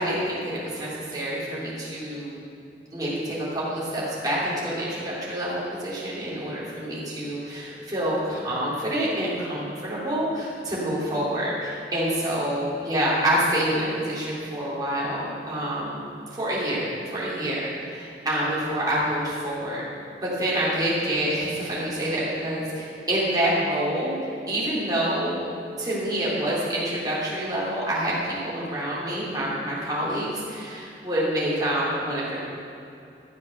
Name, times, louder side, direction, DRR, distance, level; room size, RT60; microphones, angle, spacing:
voice 1, 0.0-2.4 2.9-16.0 16.3-19.8 20.2-25.5 25.8-32.4, right 1 dB, 20° right, -8 dB, 3.5 m, -27 dB
13.5 x 7.3 x 6.6 m, 2.7 s
head